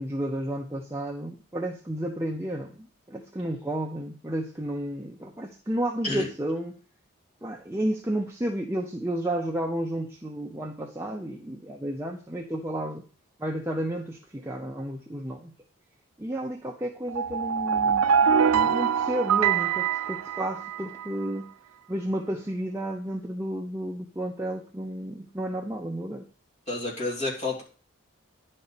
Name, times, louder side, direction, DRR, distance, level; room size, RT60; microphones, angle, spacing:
voice 1, 0.0-6.8 7.4-13.0 13.4-15.5 16.2-21.5 21.9-26.3, right 1 dB, 10° right, 0 dB, 0.6 m, -32 dB
sound 1, 17.1-21.1, right 7 dB, 90° right, 0.4 m, -24 dB
voice 2, 26.7-27.6, left 2 dB, 30° left, -4 dB, 2.7 m, -29 dB
10.5 x 4.3 x 6.8 m, 0.38 s
head